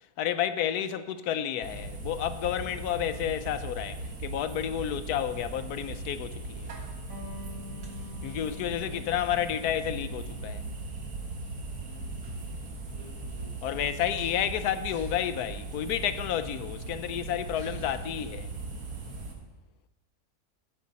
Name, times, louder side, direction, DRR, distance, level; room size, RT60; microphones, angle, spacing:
voice 1, 0.2-6.7 8.2-10.6 13.6-18.5, left 10 dB, 80° left, 1.2 m, -31 dB
sound 1, 1.6-19.3, right 3 dB, 75° right, 2.2 m, -39 dB
Electric guitar, 7.1-14.2, left 4 dB, 60° right, 3.2 m, -49 dB
voice 2, 7.8-9.2 11.8-12.6 12.8-13.7, equal, 20° right, 2.1 m, -54 dB
16.0 x 8.1 x 4.2 m
omnidirectional pair, 1.7 m